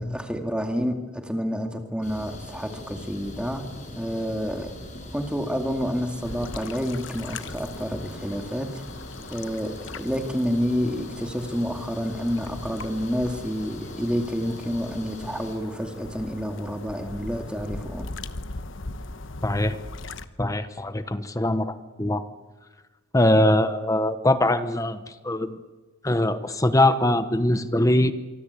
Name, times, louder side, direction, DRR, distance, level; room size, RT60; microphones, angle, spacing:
voice 1, 0.0-3.7 3.9-4.8 5.1-8.8 9.3-18.1, equal, 5° right, 4 dB, 2.3 m, -29 dB
sound 1, 2.0-15.6, left 1 dB, 35° left, 6.7 m, -41 dB
sound 2, 6.2-20.3, left 3 dB, 65° left, 1.1 m, -40 dB
voice 2, 19.4-19.8 20.4-22.2 23.1-25.0 25.2-25.6 26.0-28.1, left 1 dB, 15° left, 11 dB, 0.9 m, -22 dB
27.0 x 24.0 x 8.4 m, 1.3 s
head